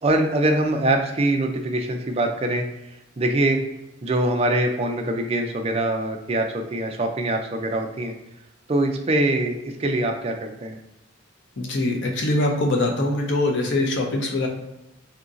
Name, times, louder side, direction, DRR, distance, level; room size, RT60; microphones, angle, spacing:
voice 1, 0.0-3.6 4.0-8.1 8.7-10.8, right 1 dB, 30° right, 4 dB, 0.4 m, -23 dB
voice 2, 11.6-14.5, left 2 dB, 60° left, 2 dB, 0.7 m, -23 dB
2.8 x 2.6 x 3.7 m, 0.90 s
head